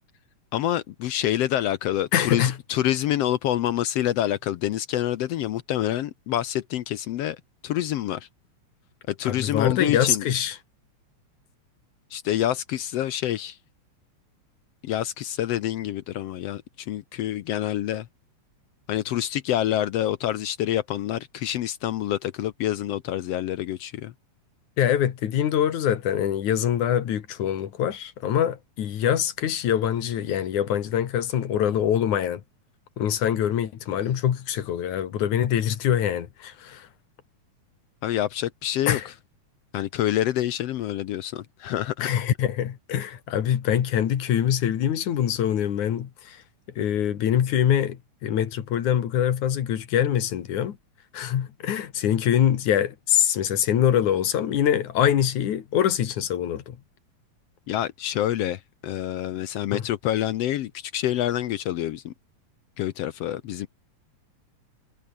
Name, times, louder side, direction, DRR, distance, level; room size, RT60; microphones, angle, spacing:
voice 1, 0.5-8.3 9.1-10.3 12.1-13.6 14.8-18.1 18.9-24.1 38.0-39.1 39.7-42.1 57.7-62.1 62.8-63.7, left 12 dB, 70° left, 1.7 m, -27 dB
voice 2, 2.1-2.6 9.2-10.6 24.8-32.4 33.0-36.9 38.9-39.1 42.0-46.4 46.8-50.8 51.1-56.8 59.7-59.8, left 10 dB, 85° left, 3.3 m, -24 dB
omnidirectional pair, 3.3 m